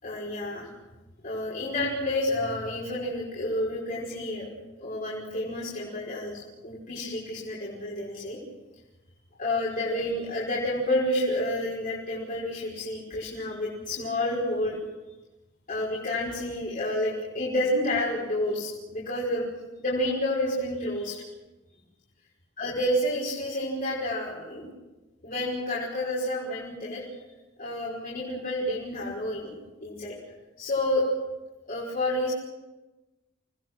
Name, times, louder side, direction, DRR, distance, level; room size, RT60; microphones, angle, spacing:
voice 1, 0.0-0.7 1.2-4.5 4.8-8.4 9.4-14.8 15.7-19.5 19.8-21.2 22.6-24.7 25.2-27.0 27.6-29.5 29.8-30.2 30.6-31.1 31.7-32.3, left 1 dB, 45° left, -6 dB, 5.4 m, -29 dB
29.0 x 19.5 x 6.3 m, 1.1 s
head